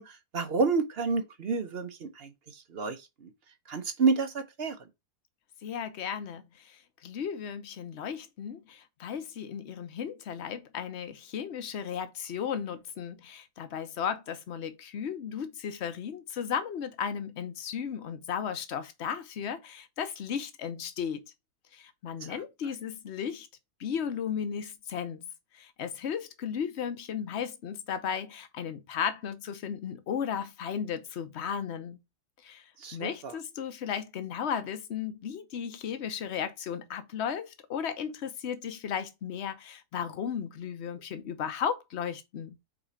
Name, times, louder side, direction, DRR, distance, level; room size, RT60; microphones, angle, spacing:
voice 1, 0.0-3.3 3.7-4.8 22.2-22.4 32.8-33.4, right 4 dB, 50° right, 0.8 m, -30 dB
voice 2, 5.6-21.2 21.7-23.5 23.8-25.3 25.5-32.0 32.4-42.6, left 7 dB, 50° left, 1.0 m, -35 dB
5.0 x 4.2 x 4.9 m
omnidirectional pair, 1.7 m